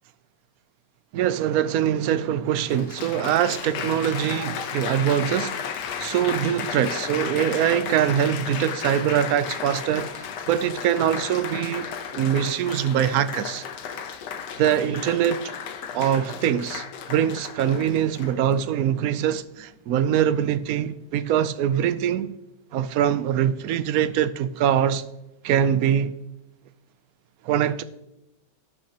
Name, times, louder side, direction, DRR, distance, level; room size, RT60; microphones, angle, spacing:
voice 1, 1.1-5.5 6.0-13.6 14.6-15.5 15.9-22.3 22.7-25.0 25.4-26.1 27.4-27.8, right 10 dB, 70° right, 0.9 m, -23 dB
Applause, 1.9-2.0 2.6-18.5 19.3-19.6, left 7 dB, 75° left, 1.4 m, -34 dB
17.5 x 6.3 x 2.9 m
omnidirectional pair, 1.9 m